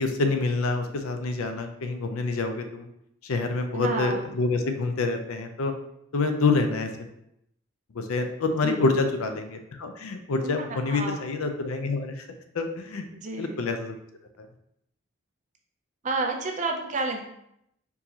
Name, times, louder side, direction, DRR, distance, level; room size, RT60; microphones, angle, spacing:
voice 1, 0.0-2.9 3.2-5.7 6.1-6.9 7.9-12.2 12.5-13.1 13.4-14.0, left 3 dB, 80° left, 6 dB, 0.5 m, -27 dB
voice 2, 3.7-4.3 8.6-9.0 10.4-11.3 13.1-13.6 16.0-17.3, right 3 dB, 35° right, 2 dB, 0.4 m, -30 dB
4.6 x 2.7 x 2.8 m, 0.77 s
head